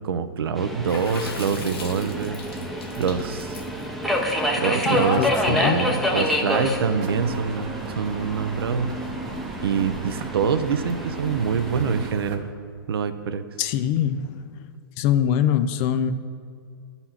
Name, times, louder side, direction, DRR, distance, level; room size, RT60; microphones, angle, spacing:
voice 1, 0.0-2.4 3.0-3.6 4.6-8.9 9.6-12.5 12.9-13.4, right 6 dB, 80° right, 10 dB, 0.6 m, -25 dB
Subway metro underground, 0.6-12.1, equal, ahead, 0.7 m, -28 dB
Water / Splash splatter, 0.9-5.4, left 4 dB, 75° left, 1.3 m, -40 dB
voice 2, 4.8-5.9 13.6-14.5 15.0-16.1, left 9 dB, 35° left, 12 dB, 0.4 m, -23 dB
sound 1, 7.0-12.4, right 5 dB, 30° right, 0.8 m, -39 dB
9.8 x 4.1 x 5.8 m, 2.2 s
hypercardioid pair, 140°, 12 cm